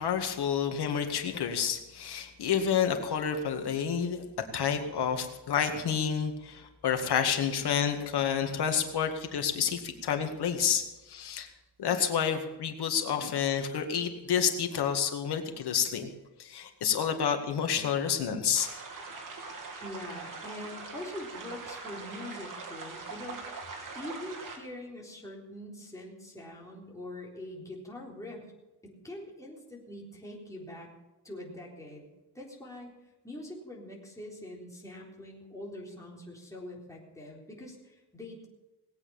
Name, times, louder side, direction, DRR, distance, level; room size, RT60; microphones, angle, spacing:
voice 1, 0.0-4.2 4.5-11.5 11.8-16.1 16.4-18.7, left 8 dB, 75° left, 5 dB, 2.1 m, -29 dB
sound 1, 18.5-24.6, right 4 dB, 55° right, 3.0 m, -42 dB
voice 2, 19.8-23.4 23.9-28.5 28.8-30.9 31.2-32.1 32.3-32.9 33.2-38.5, left 1 dB, 10° left, -3 dB, 3.8 m, -43 dB
19.0 x 8.6 x 7.1 m, 1.1 s
cardioid pair, 140°, 40 cm